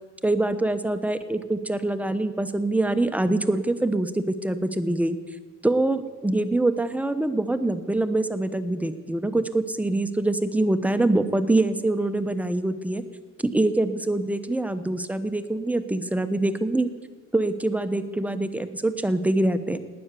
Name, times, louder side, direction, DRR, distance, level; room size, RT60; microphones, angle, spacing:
voice 1, 0.2-5.2 5.6-13.0 13.5-16.9 17.3-19.8, right 2 dB, 5° right, 10 dB, 1.1 m, -24 dB
19.0 x 9.4 x 6.9 m, 1.4 s
cardioid pair, 90°, 30 cm